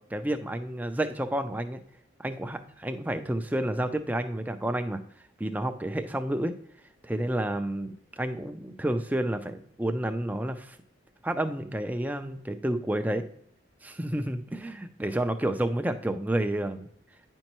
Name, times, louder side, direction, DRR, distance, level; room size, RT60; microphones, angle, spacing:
voice 1, 0.1-1.8 2.2-5.0 5.4-6.5 7.0-10.8 11.2-13.2 13.8-16.9, right 1 dB, 10° right, 7 dB, 0.4 m, -30 dB
9.7 x 5.4 x 3.0 m, 0.67 s
head